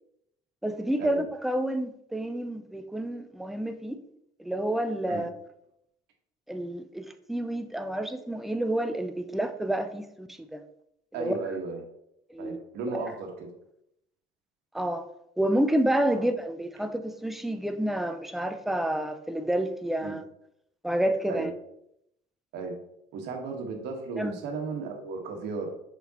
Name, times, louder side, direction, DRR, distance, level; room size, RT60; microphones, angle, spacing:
voice 1, 0.6-4.0 4.4-5.3 6.5-10.6 11.2-11.4 12.3-12.6 12.9-13.0 14.7-15.0 15.4-20.2 20.8-21.5 24.2-24.4, right 1 dB, ahead, 7 dB, 0.5 m, -29 dB
voice 2, 11.1-11.8 12.4-13.5 16.1-16.2 20.0-20.1 21.3-21.5 22.5-22.8 23.1-25.7, right 4 dB, 80° right, 2 dB, 1.4 m, -35 dB
6.4 x 5.1 x 2.9 m, 0.77 s
cardioid pair, 110°, 17 cm